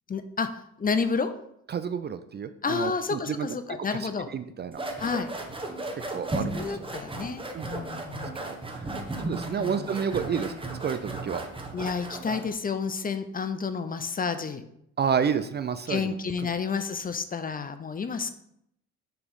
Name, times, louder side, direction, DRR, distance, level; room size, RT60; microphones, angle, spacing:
voice 1, 0.1-1.3 2.6-4.3 5.0-5.3 6.5-8.4 9.6-9.9 10.2-10.5 11.7-14.6 15.9-18.3, left 5 dB, 30° left, 10 dB, 0.5 m, -30 dB
voice 2, 1.7-3.5 3.9-4.0 4.3-4.8 6.1-6.8 7.5-7.6 8.8-8.9 9.3-10.5 10.8-11.4 15.0-16.1, right 7 dB, 35° right, 11 dB, 0.4 m, -29 dB
sound 1, 4.7-12.5, right 2 dB, 15° right, 1.0 m, -35 dB
6.7 x 3.0 x 5.5 m, 0.75 s
cardioid pair, 90°, 30 cm